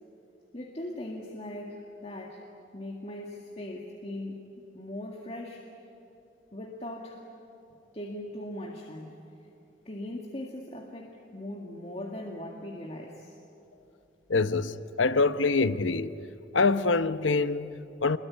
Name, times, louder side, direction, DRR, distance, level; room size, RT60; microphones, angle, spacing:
voice 1, 0.5-2.5 2.7-4.4 4.7-5.7 6.5-7.2 7.9-9.2 9.9-13.4, left 1 dB, 35° left, 2.0 m, -39 dB
voice 2, 14.3-16.1 16.5-18.2, left 3 dB, 85° left, 0.9 m, -25 dB
27.5 x 22.0 x 9.8 m
head